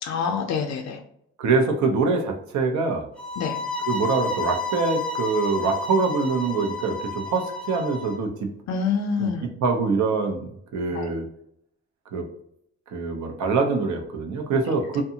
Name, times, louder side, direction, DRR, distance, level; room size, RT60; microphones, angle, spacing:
voice 1, 0.0-1.0 3.4-3.6 8.7-9.4 10.9-11.1, left 6 dB, 65° left, 4 dB, 0.5 m, -26 dB
voice 2, 1.4-3.0 3.9-8.5 9.2-9.3 9.6-11.2 12.1-12.2 12.9-15.0, right 4 dB, 70° right, 4 dB, 0.7 m, -24 dB
sound 1, 3.2-8.2, left 3 dB, 5° left, 0.4 m, -31 dB
2.7 x 2.3 x 2.7 m, 0.72 s
cardioid pair, 90°, 30 cm